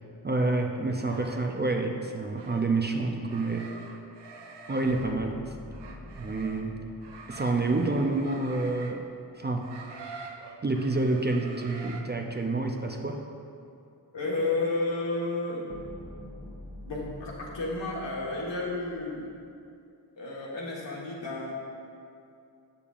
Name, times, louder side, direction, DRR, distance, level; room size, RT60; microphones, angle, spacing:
voice 1, 0.2-3.7 4.7-5.6 6.1-6.8 7.3-9.1 9.4-9.7 10.6-13.2, right 2 dB, 25° right, 3 dB, 0.4 m, -28 dB
sound 1, 0.9-1.6 2.3-2.7 3.3-5.2 5.7-6.7 7.0-9.0 9.6-12.0, right 4 dB, 65° right, 0.7 m, -45 dB
sound 2, 4.8-9.1 15.7-19.5, left 1 dB, 5° right, 1.2 m, -47 dB
voice 2, 14.1-15.6 16.8-19.2 20.2-21.5, left 2 dB, 75° left, -4 dB, 1.4 m, -31 dB
6.9 x 6.8 x 2.5 m, 2.5 s
cardioid pair, 45°, 44 cm